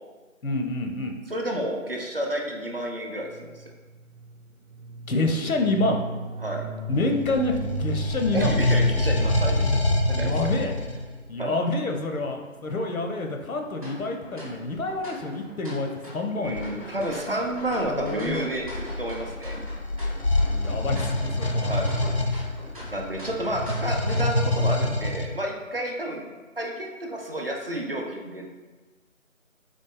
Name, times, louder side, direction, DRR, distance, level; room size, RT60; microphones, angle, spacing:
voice 1, 0.4-1.1 5.1-6.0 6.9-8.6 10.1-10.8 11.3-16.8 17.8-18.5 20.5-21.7, left 2 dB, 90° left, 3 dB, 0.8 m, -28 dB
voice 2, 1.3-3.5 6.4-6.6 8.3-10.3 11.4-11.5 16.4-19.5 21.6-21.9 22.2-22.5 22.9-28.5, right 1 dB, 45° right, 1 dB, 0.5 m, -30 dB
sound 1, 3.2-13.2, right 3 dB, 85° right, 0.9 m, -38 dB
sound 2, 7.0-11.1 16.5-16.7 17.5-25.3, left 1 dB, 50° left, 0.4 m, -26 dB
sound 3, 13.8-24.6, left 1 dB, 25° right, 0.9 m, -42 dB
4.1 x 3.1 x 3.4 m, 1.3 s
figure-of-eight pair, 175°, 41 cm